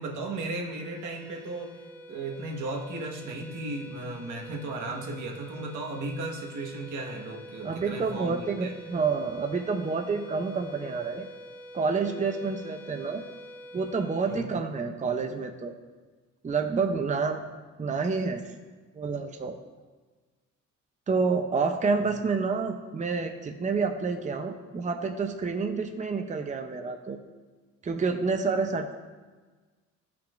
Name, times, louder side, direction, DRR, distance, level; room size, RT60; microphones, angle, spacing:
voice 1, 0.0-1.7 2.1-8.7 14.3-14.5, right 2 dB, 80° right, 0 dB, 1.6 m, -35 dB
sound 1, 0.7-15.2, equal, 5° left, 1.5 m, -47 dB
voice 2, 7.6-11.3 11.7-13.2 13.7-15.7 16.4-17.4 17.8-18.4 19.0-19.6 21.1-27.2 27.8-28.9, right 4 dB, 25° right, 5 dB, 0.7 m, -28 dB
14.0 x 5.9 x 2.6 m, 1.3 s
cardioid pair, 90°, 30 cm